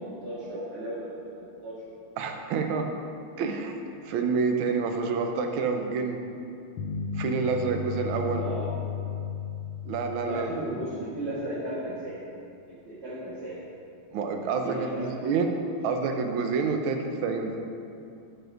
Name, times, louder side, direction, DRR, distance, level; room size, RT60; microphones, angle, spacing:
voice 1, 0.0-1.8 8.3-8.7 10.2-12.1 12.9-13.6 14.5-15.4, right 1 dB, 30° right, -13 dB, 1.7 m, -35 dB
voice 2, 2.2-2.8 3.4-3.8 4.0-6.2 7.1-8.4 9.8-10.5 14.1-15.5 15.8-17.6, right 5 dB, 75° right, 4 dB, 1.5 m, -28 dB
sound 1, 6.8-11.0, left 5 dB, 80° left, 1.5 m, -34 dB
9.2 x 4.2 x 5.1 m, 2.5 s
omnidirectional pair, 2.4 m